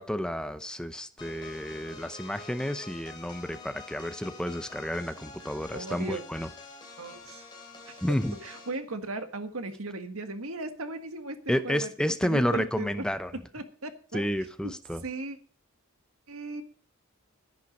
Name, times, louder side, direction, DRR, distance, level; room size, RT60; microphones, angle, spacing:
voice 1, 0.0-6.5 8.0-8.3 11.5-13.3 14.1-15.0, equal, 5° left, 10 dB, 0.7 m, -30 dB
sound 1, 1.2-8.8, left 4 dB, 20° left, 3.5 m, -47 dB
voice 2, 5.7-6.2 7.0-7.4 7.8-8.0 8.4-11.4 11.6-11.9 12.2-13.0 13.5-14.3 14.6-14.7 15.0-15.4 16.3-16.6, right 2 dB, 80° right, 7 dB, 1.7 m, -37 dB
11.5 x 10.5 x 5.3 m, 0.41 s
head